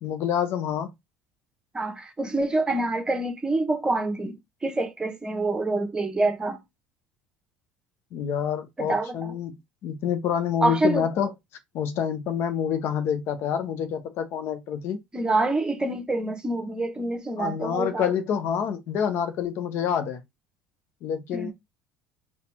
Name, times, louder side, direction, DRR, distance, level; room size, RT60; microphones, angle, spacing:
voice 1, 0.0-0.9 8.1-9.6 9.8-11.3 11.7-15.0 17.4-20.2 21.0-21.5, left 8 dB, 60° left, 0.8 m, -27 dB
voice 2, 1.7-6.6 8.8-9.3 10.6-11.0 15.1-18.1 21.3-21.5, right 2 dB, 15° right, 1.1 m, -26 dB
4.1 x 2.4 x 4.3 m
hypercardioid pair, 80°, 5 cm